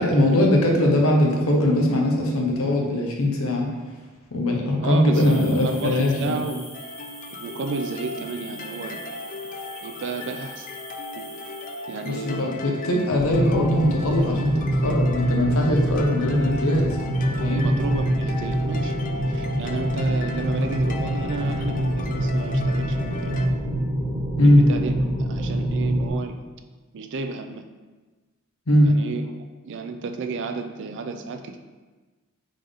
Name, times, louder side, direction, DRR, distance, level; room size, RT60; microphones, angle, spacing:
voice 1, 0.0-3.7 4.3-6.4 12.0-17.0 17.4-17.6 24.4-24.6 28.7-28.9, left 1 dB, 70° left, 0 dB, 0.8 m, -21 dB
voice 2, 4.8-6.7 7.3-9.0 9.8-10.7 11.1-11.3 11.9-12.8 17.5-18.9 19.3-23.6 24.4-26.4 26.9-27.6 28.8-29.3 29.6-31.6, right 4 dB, 55° right, 6 dB, 0.4 m, -32 dB
sound 1, 5.1-12.4, left 1 dB, 10° left, 0.8 m, -43 dB
sound 2, 6.7-23.5, left 2 dB, 40° left, 0.3 m, -37 dB
sound 3, 13.1-26.1, right 1 dB, 15° right, 1.2 m, -25 dB
3.7 x 3.5 x 3.5 m, 1.3 s
head